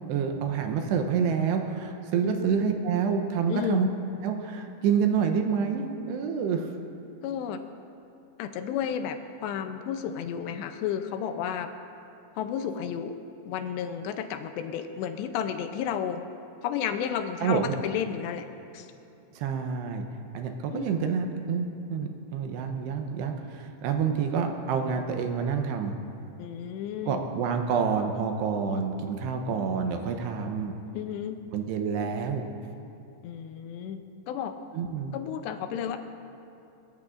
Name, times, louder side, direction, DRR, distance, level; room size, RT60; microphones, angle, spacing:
voice 1, 0.1-3.9 4.2-6.7 17.4-17.7 19.4-20.0 20.3-26.0 27.1-30.7 31.5-32.5 34.7-35.1, right 6 dB, 80° right, 5 dB, 2.9 m, -28 dB
voice 2, 3.5-3.8 7.2-7.6 8.4-11.7 12.4-13.2 13.5-16.2 16.6-18.5 18.7-18.9 20.7-20.9 26.4-27.2 30.9-31.4 33.2-34.6 35.1-36.0, left 8 dB, 80° left, 8 dB, 2.8 m, -32 dB
21.5 x 19.0 x 2.5 m, 2.9 s
omnidirectional pair, 5.1 m